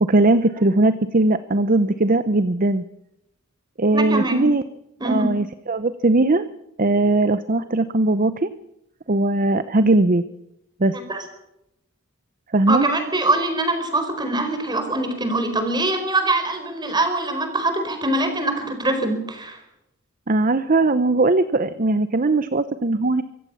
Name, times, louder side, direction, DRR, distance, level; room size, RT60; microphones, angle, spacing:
voice 1, 0.0-2.8 3.8-4.6 5.0-6.5 6.8-8.5 9.1-10.2 10.8-11.0 12.5-12.9 20.3-23.2, right 2 dB, 40° right, 13 dB, 0.8 m, -19 dB
voice 2, 3.9-4.5 5.0-5.3 10.9-11.2 12.7-19.6, right 2 dB, 20° right, 6 dB, 4.6 m, -23 dB
24.5 x 16.0 x 7.1 m, 0.84 s
head